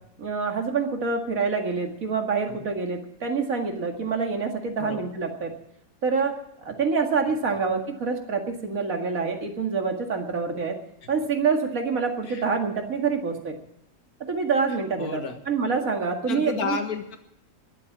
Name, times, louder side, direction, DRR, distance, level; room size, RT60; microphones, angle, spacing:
voice 1, 0.2-5.5 6.0-6.3 6.6-10.8 11.1-13.6 14.3-16.8, right 5 dB, 65° right, 3 dB, 2.5 m, -26 dB
voice 2, 4.8-5.1 11.0-11.1 12.2-12.4 15.0-15.4 16.3-17.2, left 5 dB, 85° left, 7 dB, 2.0 m, -32 dB
21.5 x 7.7 x 7.3 m, 0.82 s
omnidirectional pair, 1.6 m